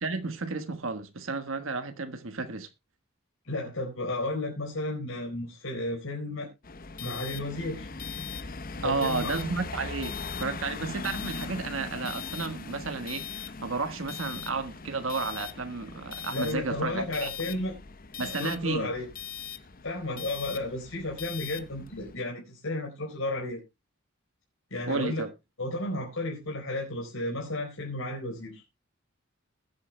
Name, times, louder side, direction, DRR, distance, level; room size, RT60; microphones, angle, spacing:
voice 1, 0.0-2.7 8.8-17.3 18.2-18.9 24.9-25.3, right 4 dB, 75° right, 1.4 m, -32 dB
voice 2, 3.4-6.5 7.0-7.9 8.8-9.3 16.3-17.8 18.4-19.1 19.8-23.6 24.7-25.2 25.6-28.6, left 2 dB, 80° left, 4.3 m, -33 dB
sound 1, 6.6-22.2, left 5 dB, 45° left, 0.9 m, -39 dB
21.0 x 8.5 x 2.2 m
head